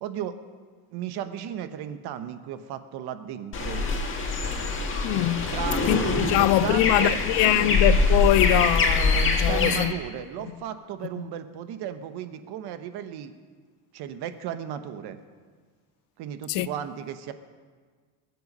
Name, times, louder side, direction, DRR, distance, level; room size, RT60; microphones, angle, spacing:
voice 1, 0.0-0.4 0.9-3.8 5.5-7.8 9.5-13.3 13.9-15.2 16.2-17.3, right 10 dB, 65° right, 1.2 m, -35 dB
sound 1, 3.5-9.8, left 3 dB, 30° left, 1.7 m, -24 dB
voice 2, 5.0-5.5 5.9-9.9 11.2-11.3 16.5-16.7, left 15 dB, 80° left, 0.7 m, -23 dB
21.0 x 7.9 x 5.5 m
cardioid pair, 160°, 43 cm